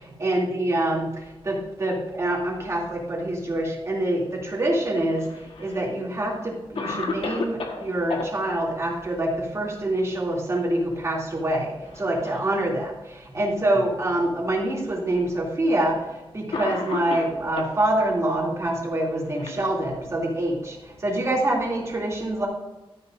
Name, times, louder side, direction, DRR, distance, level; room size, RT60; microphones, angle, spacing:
voice 1, 0.0-22.5, right 1 dB, 30° right, -3 dB, 2.8 m, -26 dB
Cough, 5.0-5.8 6.3-6.4 6.8-8.3 10.2-10.6 10.9-11.0 11.8-12.5 13.3-13.4 14.5-14.6 15.7-15.9 16.5-17.8 18.7-20.2, left 3 dB, 70° left, 1.4 m, -33 dB
13.0 x 9.8 x 2.6 m, 1.1 s
wide cardioid pair, 145°, 10 cm